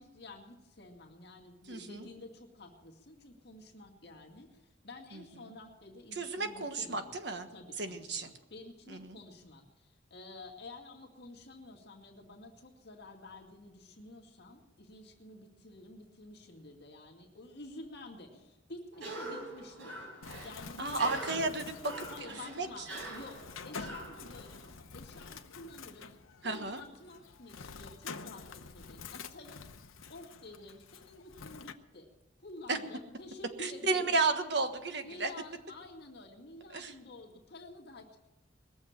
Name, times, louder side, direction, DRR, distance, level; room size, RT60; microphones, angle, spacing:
voice 1, 0.0-7.1 7.5-20.1 20.4-21.3 22.1-26.1 26.4-29.6 30.1-32.1 32.4-34.2 35.0-38.2, left 2 dB, 55° left, 0 dB, 2.2 m, -50 dB
voice 2, 1.7-2.1 6.1-7.5 7.8-8.3 8.9-9.2 20.8-21.9 22.5-22.7 26.4-26.8 32.7-32.8 33.6-35.3 36.7-36.9, right 3 dB, 55° right, 7 dB, 1.4 m, -33 dB
Cough, 18.9-24.7, right 1 dB, 80° right, 4.9 m, -45 dB
Bird, 20.2-31.7, left 5 dB, 90° left, 0.9 m, -48 dB
21.0 x 7.3 x 9.0 m, 1.0 s
head